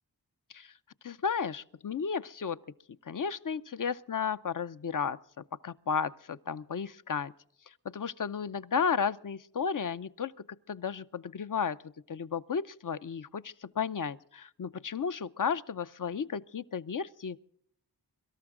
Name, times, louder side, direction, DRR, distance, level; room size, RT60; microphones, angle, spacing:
voice 1, 1.0-2.6 3.1-5.2 5.6-7.3 7.9-10.3 10.7-11.8 12.1-17.4, left 6 dB, 55° left, 0.6 m, -33 dB
24.0 x 13.0 x 3.7 m
wide cardioid pair, 75°, 40 cm